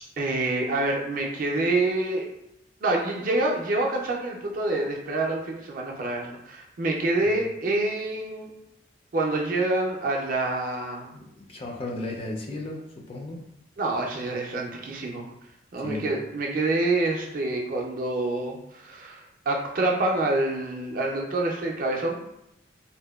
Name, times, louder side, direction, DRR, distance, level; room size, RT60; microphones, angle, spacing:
voice 1, 0.2-2.3 2.8-8.5 9.1-11.1 13.8-15.3 15.7-22.2, right 2 dB, 50° right, 0 dB, 0.4 m, -27 dB
voice 2, 11.1-13.4 15.8-16.1, left 2 dB, 30° left, -1 dB, 0.3 m, -35 dB
2.7 x 2.1 x 2.2 m, 0.82 s
head